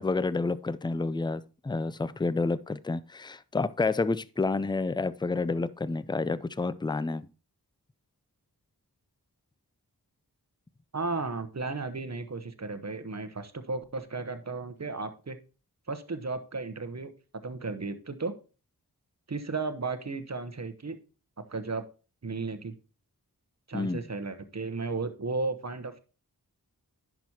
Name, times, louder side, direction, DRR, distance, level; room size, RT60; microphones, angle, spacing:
voice 1, 0.0-7.3 23.7-24.0, left 3 dB, 10° left, 0.4 m, -29 dB
voice 2, 10.9-15.4 15.9-17.1 17.4-18.3 19.3-21.0 21.5-21.8 22.2-22.7 23.7-26.0, right 3 dB, 45° right, 0.9 m, -34 dB
10.5 x 6.0 x 2.8 m
wide cardioid pair, 45°, 38 cm